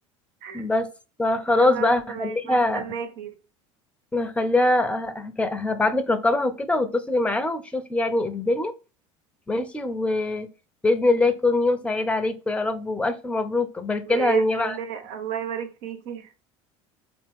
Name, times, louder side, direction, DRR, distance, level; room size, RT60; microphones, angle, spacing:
voice 1, 0.5-0.9 1.2-2.9 4.1-8.7 9.5-10.5 10.8-14.8, left 2 dB, 5° left, 0.7 m, -23 dB
voice 2, 1.5-3.3 14.0-16.3, right 9 dB, 65° right, 1.1 m, -32 dB
4.3 x 2.9 x 3.6 m
hypercardioid pair, 70°, 16 cm